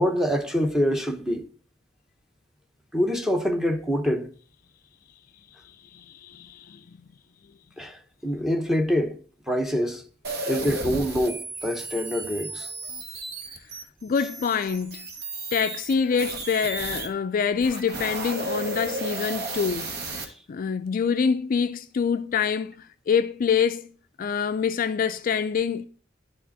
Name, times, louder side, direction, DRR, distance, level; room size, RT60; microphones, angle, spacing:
voice 1, 0.0-1.4 2.9-4.3 7.8-9.1 9.5-10.0 10.5-12.7, equal, ahead, 0.9 m, -25 dB
voice 2, 5.9-7.0 14.0-15.1 15.5-20.0 20.5-23.9 24.2-25.9, left 6 dB, 45° left, 0.3 m, -26 dB
sound 1, 10.2-17.1 17.5-20.2, right 2 dB, 60° right, 1.3 m, -34 dB
11.5 x 4.2 x 4.0 m
head